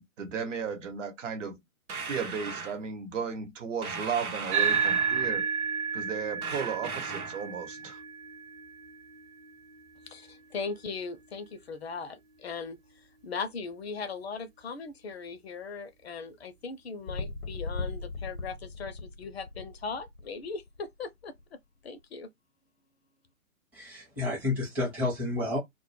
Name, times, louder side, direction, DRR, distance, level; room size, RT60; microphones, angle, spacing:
voice 1, 0.2-1.6 2.1-5.5 5.9-8.0, right 6 dB, 60° right, 0.9 m, -35 dB
sound 1, 1.9-2.8 3.8-5.4 6.4-7.5, right 4 dB, 85° right, 0.8 m, -38 dB
sound 2, 4.5-13.2, right 6 dB, 40° right, 1.0 m, -33 dB
voice 2, 10.1-12.8 13.2-21.3 21.8-22.3, left 5 dB, 50° left, 0.4 m, -39 dB
sound 3, 17.1-20.8 21.4-21.5, left 3 dB, 90° left, 0.7 m, -38 dB
voice 3, 23.7-25.6, left 2 dB, 5° right, 0.5 m, -30 dB
2.1 x 2.1 x 3.0 m
figure-of-eight pair, 125°, 43 cm